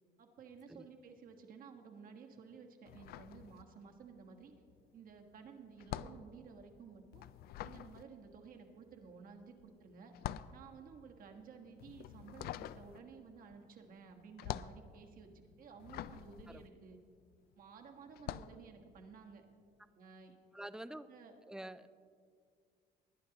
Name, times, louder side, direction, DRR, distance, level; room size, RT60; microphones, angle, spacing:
voice 1, 0.2-4.5 4.9-7.3 7.6-10.1 10.5-17.0 17.6-19.4 19.9-20.4 21.1-21.4, right 5 dB, 55° right, 3 dB, 1.5 m, -54 dB
sound 1, 2.9-4.1 4.4-17.5 18.1-18.6, left 12 dB, 65° left, 0.4 m, -46 dB
voice 2, 20.5-21.1 21.4-21.9, right 1 dB, 5° right, 13 dB, 0.4 m, -47 dB
20.0 x 10.5 x 2.9 m, 2.2 s
cardioid pair, 110°, 17 cm